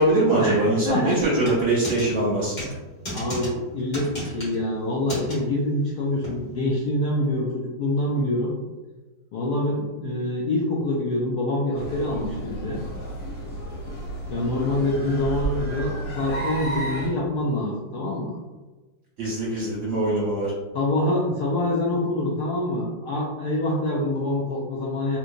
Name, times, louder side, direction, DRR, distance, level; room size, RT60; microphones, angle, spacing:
voice 1, 0.0-2.5 19.2-20.5, right 2 dB, 45° right, -8 dB, 1.4 m, -22 dB
voice 2, 0.8-1.2 3.1-8.5 9.3-12.8 14.3-18.3 20.7-25.2, left 1 dB, 75° left, -4 dB, 0.9 m, -25 dB
sound 1, 1.4-2.1 2.6-2.7 3.1-3.5 3.9-4.6 5.1-5.4 6.2-6.3, right 1 dB, 30° left, 1.3 m, -32 dB
sound 2, 11.7-17.1, right 2 dB, 50° left, 1.6 m, -32 dB
3.5 x 2.9 x 2.5 m, 1.2 s
omnidirectional pair, 2.2 m